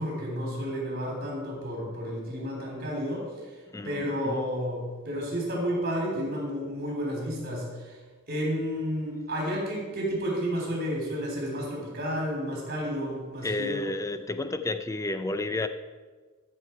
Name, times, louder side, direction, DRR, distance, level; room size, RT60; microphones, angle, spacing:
voice 1, 0.0-3.3 3.8-8.0 8.3-13.8, equal, 50° right, -2 dB, 3.5 m, -31 dB
voice 2, 3.7-4.4 13.4-15.7, left 2 dB, 15° left, 10 dB, 0.4 m, -31 dB
13.5 x 6.5 x 4.6 m, 1.4 s
head